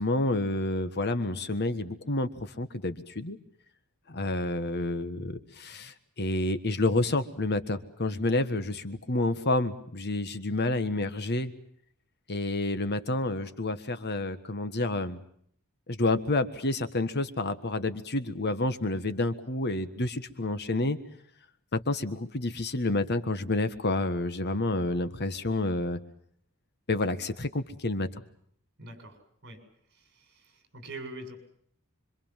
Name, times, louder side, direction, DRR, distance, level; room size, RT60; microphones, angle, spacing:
voice 1, 0.0-3.4 4.1-11.5 12.3-15.2 15.9-21.0 21.7-26.0 26.9-28.2, left 2 dB, 50° left, 11 dB, 1.6 m, -29 dB
voice 2, 28.8-29.6 29.9-31.4, right 2 dB, 55° right, 7 dB, 7.3 m, -44 dB
26.5 x 24.5 x 7.5 m, 0.65 s
head